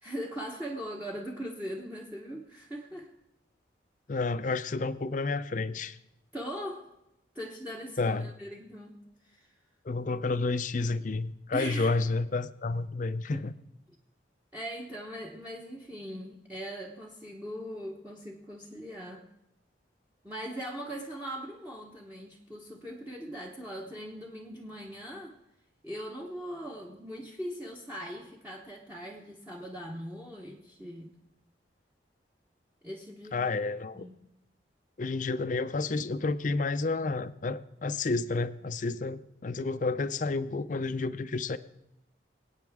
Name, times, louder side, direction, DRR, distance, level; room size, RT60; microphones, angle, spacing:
voice 1, 0.0-3.1 6.3-6.9 7.3-9.5 11.5-11.9 13.3-13.4 14.5-19.2 20.2-25.4 25.8-31.1 32.8-33.4 33.9-34.2, equal, 10° right, -2 dB, 1.0 m, -40 dB
voice 2, 4.1-6.0 8.0-8.3 9.9-13.5 33.3-34.1 35.0-41.6, left 3 dB, 45° left, 14 dB, 0.5 m, -30 dB
26.0 x 8.8 x 3.5 m, 0.87 s
head